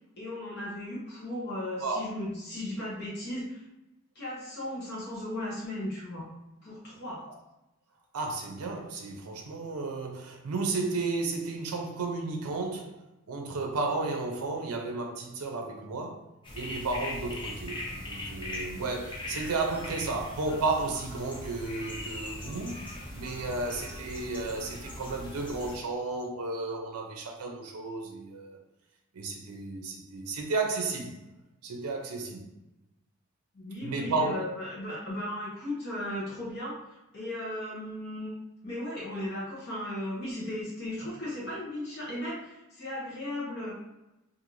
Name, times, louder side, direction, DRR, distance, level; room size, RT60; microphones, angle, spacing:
voice 1, 0.2-3.6 4.1-6.3 6.6-7.2 33.5-38.3 38.6-43.7, left 1 dB, 50° left, 0.9 m, -36 dB
voice 2, 8.1-12.9 13.3-16.3 16.5-17.8 18.1-22.8 23.1-28.6 29.1-31.1 31.6-32.4 33.8-34.4, right 3 dB, 85° right, 0.5 m, -33 dB
sound 1, 16.4-25.8, left 1 dB, 20° left, 0.4 m, -40 dB
3.0 x 2.6 x 2.5 m
head